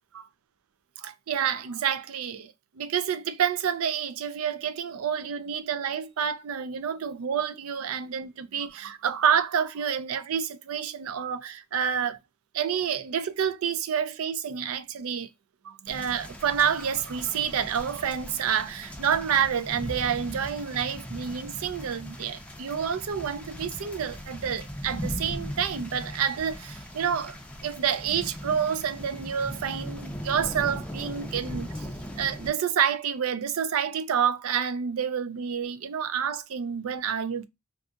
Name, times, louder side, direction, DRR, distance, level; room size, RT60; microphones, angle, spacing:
voice 1, 1.0-12.2 12.5-15.3 15.6-27.4 27.6-31.7 32.2-37.4, right 8 dB, 80° right, 0.4 m, -28 dB
sound 1, 15.9-32.5, equal, 5° left, 0.5 m, -39 dB
2.7 x 2.4 x 2.4 m
head